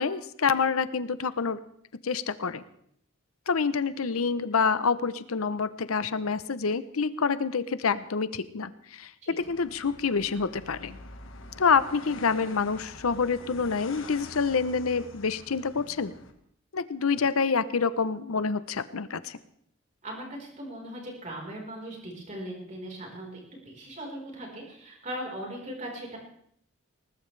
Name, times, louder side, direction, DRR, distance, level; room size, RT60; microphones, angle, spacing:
voice 1, 0.0-1.6 2.0-2.6 3.5-11.0 11.6-16.1 16.7-19.4, left 5 dB, 90° left, 14 dB, 0.7 m, -27 dB
sound 1, 9.4-16.3, left 3 dB, 70° left, 1.5 m, -46 dB
voice 2, 20.0-26.2, right 1 dB, 35° right, -1 dB, 4.3 m, -39 dB
20.0 x 19.5 x 3.3 m, 0.68 s
head